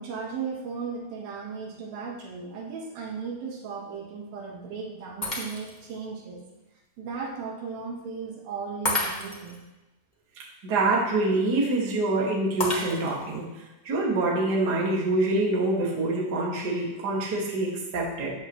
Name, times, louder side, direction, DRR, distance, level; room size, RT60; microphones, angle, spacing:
voice 1, 0.0-6.4 7.0-9.6, right 5 dB, 85° right, -1 dB, 3.4 m, -36 dB
Shatter, 5.2-5.9 6.5-6.6 8.8-9.6 12.6-13.3, left 1 dB, 40° left, 0.6 m, -30 dB
voice 2, 10.6-13.4 13.8-18.3, right 2 dB, 35° right, -3 dB, 2.1 m, -25 dB
14.0 x 9.1 x 3.2 m, 1.0 s
omnidirectional pair, 4.1 m